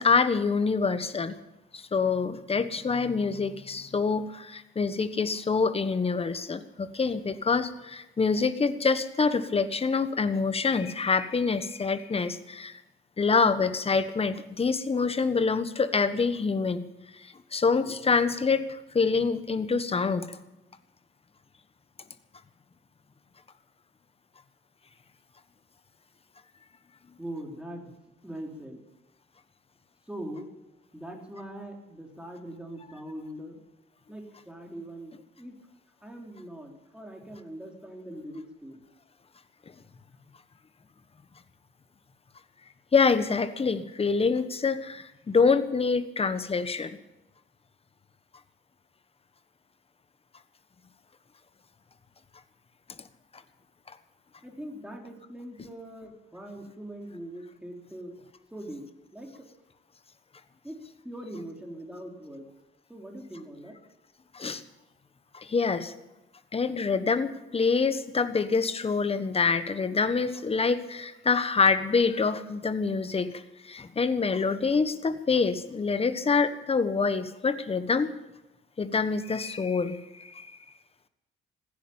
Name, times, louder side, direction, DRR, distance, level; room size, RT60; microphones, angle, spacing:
voice 1, 0.0-1.3 1.7-12.8 13.2-16.9 17.2-20.4 42.9-46.9 64.3-64.6 65.3-65.9 66.5-78.1 78.8-80.5, left 4 dB, 30° left, 12 dB, 1.3 m, -26 dB
voice 2, 27.2-27.9 28.2-28.8 30.1-30.5 30.9-33.6 34.1-35.6 36.0-38.8 54.4-58.2 58.5-58.9 59.1-59.5 60.6-62.5 62.9-63.8, right 1 dB, 5° right, 1 dB, 4.0 m, -41 dB
16.0 x 10.0 x 8.9 m, 0.98 s
cardioid pair, 90°, 20 cm